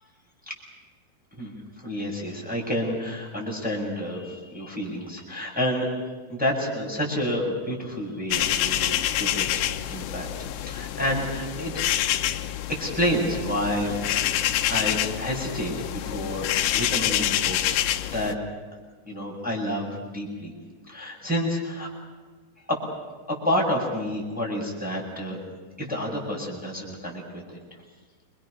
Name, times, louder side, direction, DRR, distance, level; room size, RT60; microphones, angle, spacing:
voice 1, 1.3-5.9 6.3-10.3 10.6-11.8 12.7-14.3 14.7-17.8 18.1-18.3 19.1-20.5 20.9-21.9 22.7-22.8 23.3-25.4 25.8-27.6, equal, ahead, -2 dB, 7.1 m, -29 dB
sound 1, 8.3-18.3, left 12 dB, 90° left, 3.4 m, -27 dB
29.5 x 25.0 x 6.8 m, 1.4 s
omnidirectional pair, 5.1 m